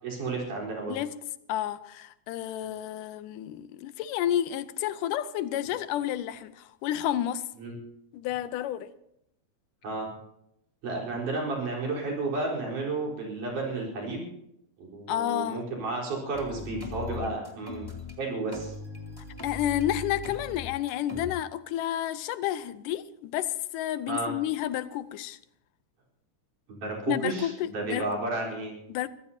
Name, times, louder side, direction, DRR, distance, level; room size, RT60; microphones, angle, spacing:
voice 1, 0.0-1.0 7.6-7.8 9.8-10.1 10.8-14.3 14.8-17.9 18.2-18.7 24.1-24.3 26.7-28.7, right 3 dB, 75° right, 5.8 m, -32 dB
voice 2, 1.5-7.4 8.1-8.9 15.1-15.6 19.4-25.4 27.1-28.1 28.9-29.1, left 12 dB, 85° left, 2.3 m, -30 dB
sound 1, 16.3-18.1 18.5-21.3, left 4 dB, 10° left, 2.1 m, -39 dB
24.0 x 15.0 x 2.8 m
omnidirectional pair, 3.6 m